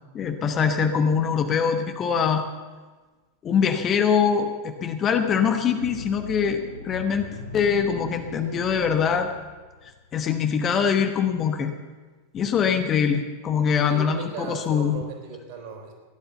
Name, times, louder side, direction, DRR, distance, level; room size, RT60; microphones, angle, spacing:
voice 1, 0.1-2.4 3.4-7.3 7.5-9.3 10.1-11.7 12.3-15.0, left 7 dB, 30° left, 6 dB, 1.1 m, -23 dB
sound 1, 5.8-10.1, left 2 dB, 90° left, 1.6 m, -39 dB
voice 2, 13.7-15.9, right 5 dB, 45° right, 3 dB, 3.6 m, -37 dB
16.5 x 11.0 x 6.9 m, 1.3 s
figure-of-eight pair, 90°, 0 cm